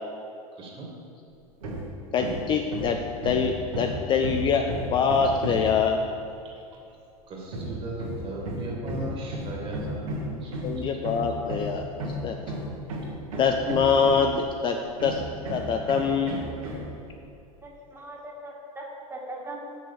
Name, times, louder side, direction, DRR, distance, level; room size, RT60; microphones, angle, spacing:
voice 1, 0.6-0.9 6.4-6.6 7.3-10.5, right 2 dB, 30° right, -1 dB, 2.2 m, -37 dB
Hammer, 1.6-1.9 2.2-5.8 7.5-14.4 15.0-16.9, right 1 dB, 65° right, 1.8 m, -33 dB
voice 2, 2.1-3.0 3.2-4.6 4.9-6.0 10.3-12.4 13.4-14.8 15.0-15.2 15.5-16.4, left 6 dB, 25° left, 4 dB, 0.5 m, -24 dB
voice 3, 17.6-19.8, right 1 dB, 10° right, -2 dB, 1.7 m, -40 dB
6.6 x 6.1 x 7.0 m, 2.6 s
figure-of-eight pair, 80°, 19 cm